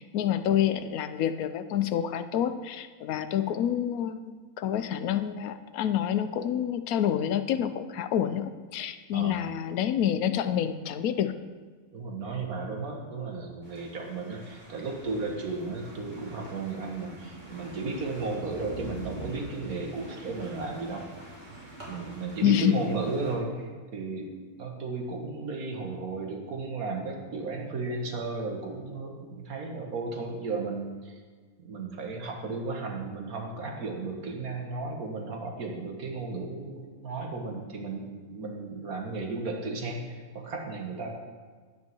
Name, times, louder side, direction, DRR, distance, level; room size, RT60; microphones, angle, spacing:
voice 1, 0.0-11.3 22.4-22.7, left 10 dB, 85° left, 11 dB, 1.1 m, -28 dB
voice 2, 9.1-9.5 11.9-21.0 21.9-31.2 31.6-41.2, right 3 dB, 90° right, 1 dB, 1.9 m, -34 dB
sound 1, 13.6-23.3, right 1 dB, 30° right, 2.8 m, -45 dB
9.7 x 4.7 x 7.6 m, 1.5 s
omnidirectional pair, 1.5 m